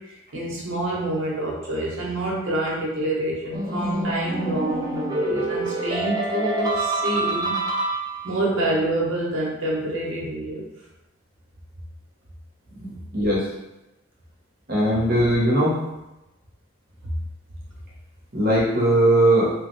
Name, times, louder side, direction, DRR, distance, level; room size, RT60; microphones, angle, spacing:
voice 1, 0.3-7.6 8.2-10.6, right 1 dB, 70° right, -4 dB, 1.0 m, -27 dB
sound 1, 3.5-8.5, right 2 dB, 20° right, 0.5 m, -27 dB
voice 2, 12.8-13.5 14.7-15.8 18.3-19.5, right 1 dB, 50° right, -5 dB, 1.0 m, -19 dB
3.3 x 2.2 x 3.1 m, 0.96 s
head